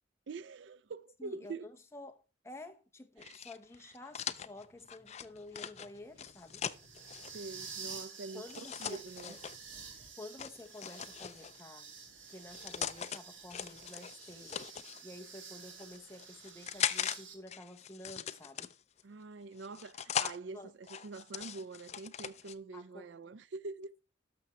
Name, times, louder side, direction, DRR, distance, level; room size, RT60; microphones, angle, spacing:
voice 1, 0.3-1.7 3.2-3.4 7.3-8.5 8.8-9.4 19.0-23.9, right 3 dB, 70° right, 0.5 m, -45 dB
voice 2, 1.2-6.6 8.3-9.4 10.2-12.0 12.3-14.7 15.0-18.7 20.5-20.7 22.7-23.0, left 2 dB, 15° left, 1.0 m, -50 dB
sound 1, 3.2-7.3 8.5-9.6 10.4-11.6 12.3-13.2 13.5-15.0 15.7-17.2 17.5-19.0 19.6-20.4 20.8-22.5, left 8 dB, 35° left, 0.4 m, -40 dB
sound 2, 4.2-17.3, right 5 dB, 85° right, 2.4 m, -51 dB
12.5 x 6.2 x 4.4 m
head